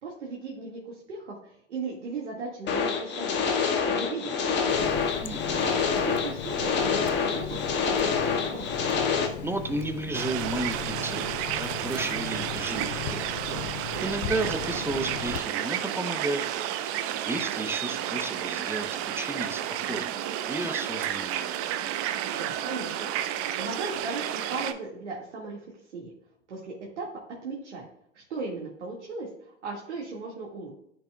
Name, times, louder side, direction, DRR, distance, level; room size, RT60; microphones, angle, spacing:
voice 1, 0.0-3.5 3.9-4.9 5.6-8.1 8.4-8.8 22.4-23.1 23.6-25.6 25.9-26.1 26.5-27.1 27.4-27.9 28.1-30.7, right 3 dB, 75° right, -2 dB, 2.0 m, -37 dB
sound 1, 2.7-9.3, left 5 dB, 30° left, 1.7 m, -27 dB
Water tap faucet, 4.7-15.4, left 11 dB, 50° left, 0.7 m, -38 dB
voice 2, 5.2-5.7 9.1-13.3 14.0-16.5 16.9-21.5, right 2 dB, 5° right, 8 dB, 0.8 m, -33 dB
sound 2, 10.1-24.7, right 11 dB, 40° right, 0.7 m, -31 dB
13.5 x 6.0 x 2.3 m, 0.75 s
figure-of-eight pair, 90°, 35 cm